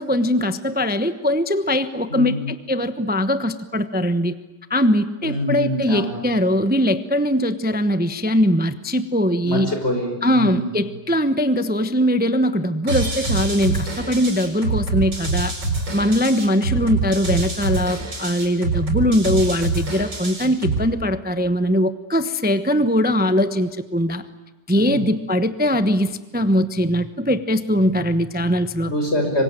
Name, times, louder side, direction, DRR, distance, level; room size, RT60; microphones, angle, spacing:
voice 1, 0.0-4.3 4.7-9.7 10.2-15.5 15.9-24.2 24.7-28.9, equal, 10° right, 11 dB, 0.7 m, -21 dB
voice 2, 2.1-2.4 5.2-6.2 9.4-10.7 24.9-25.0 28.9-29.4, equal, 35° left, 4 dB, 6.1 m, -24 dB
sound 1, 12.9-20.9, right 3 dB, 90° right, 6.9 m, -25 dB
26.5 x 24.5 x 9.2 m, 1.1 s
omnidirectional pair, 1.9 m